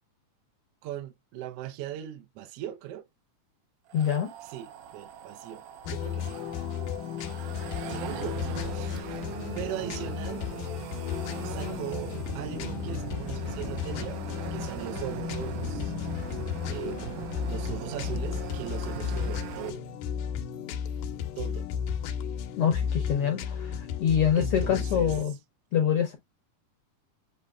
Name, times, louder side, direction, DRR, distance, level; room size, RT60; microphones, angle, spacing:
voice 1, 0.8-3.0 4.4-6.4 7.9-9.0 9.5-10.4 11.4-14.2 14.5-15.9 16.7-19.8 21.4-21.7 24.3-25.2, right 12 dB, 70° right, 1.5 m, -39 dB
voice 2, 3.9-4.3 8.9-9.0 22.6-25.3 25.7-26.2, left 8 dB, 70° left, 1.4 m, -26 dB
sound 1, 3.9-19.7, right 8 dB, 85° right, 2.3 m, -39 dB
sound 2, 5.9-25.3, left 8 dB, 85° left, 2.1 m, -34 dB
7.6 x 2.7 x 2.3 m
omnidirectional pair, 3.6 m